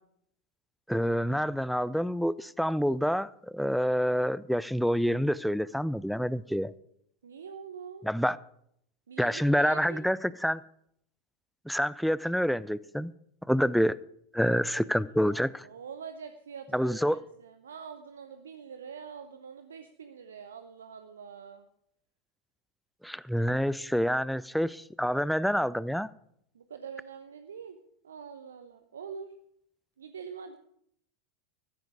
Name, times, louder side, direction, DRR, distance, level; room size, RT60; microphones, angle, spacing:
voice 1, 0.9-6.7 8.0-8.4 9.2-10.6 11.7-13.1 13.5-14.0 14.3-15.7 16.7-17.2 23.0-26.1, equal, ahead, 0.5 m, -27 dB
voice 2, 7.2-8.1 9.1-10.1 14.4-21.7 26.5-27.8 28.0-29.3 30.0-30.6, right 6 dB, 70° right, 0.9 m, -45 dB
14.5 x 13.5 x 4.9 m
figure-of-eight pair, 85°, 0 cm